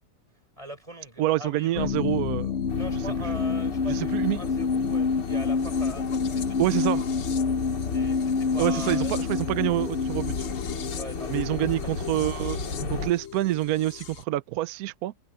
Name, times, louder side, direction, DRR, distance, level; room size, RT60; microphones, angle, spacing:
voice 1, 0.6-1.9 2.8-6.6 6.9-7.0 7.9-9.2 9.4-9.6 11.0-11.9 12.6-12.9, right 1 dB, 20° right, 5.8 m, -41 dB
voice 2, 1.2-2.5 3.9-4.4 6.6-7.1 8.6-10.5 11.3-15.1, right 15 dB, 70° right, 0.9 m, -27 dB
sound 1, 1.8-14.2, left 5 dB, 50° left, 0.9 m, -28 dB
sound 2, 2.7-13.1, left 3 dB, 75° left, 3.1 m, -36 dB
omnidirectional pair, 1.9 m